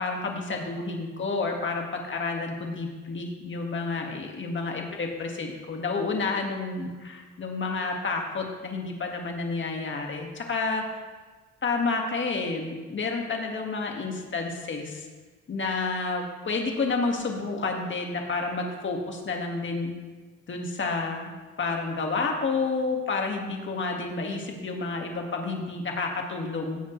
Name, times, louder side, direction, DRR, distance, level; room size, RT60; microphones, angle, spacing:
voice 1, 0.0-11.0 11.6-15.1 15.5-19.9 20.5-21.3 21.6-26.8, left 3 dB, 40° left, 1 dB, 1.9 m, -30 dB
16.5 x 7.4 x 3.3 m, 1.4 s
cardioid pair, 90°, 30 cm